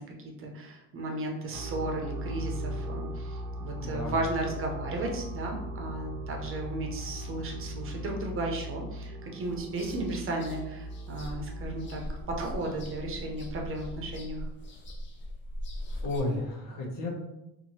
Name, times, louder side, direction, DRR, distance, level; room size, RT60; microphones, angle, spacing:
voice 1, 0.0-14.5, right 2 dB, 40° right, 1 dB, 0.7 m, -35 dB
sound 1, 1.5-14.2, equal, 75° right, 0.6 m, -39 dB
voice 2, 3.8-4.2 16.0-17.1, left 2 dB, 70° left, -1 dB, 1.0 m, -32 dB
sound 2, 9.4-16.2, equal, 35° left, 0.5 m, -41 dB
2.8 x 2.5 x 2.7 m, 0.90 s
cardioid pair, 105°, 34 cm